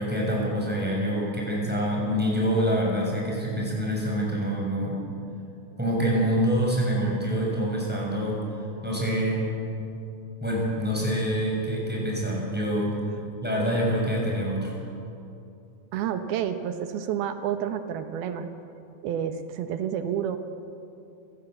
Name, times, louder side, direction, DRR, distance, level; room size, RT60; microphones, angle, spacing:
voice 1, 0.0-5.0 5.8-9.5 10.4-13.0 13.4-14.7, equal, ahead, -3 dB, 6.5 m, -26 dB
voice 2, 15.9-18.5 19.0-20.4, right 9 dB, 80° right, 8 dB, 3.0 m, -29 dB
28.0 x 16.5 x 8.1 m, 2.6 s
omnidirectional pair, 4.5 m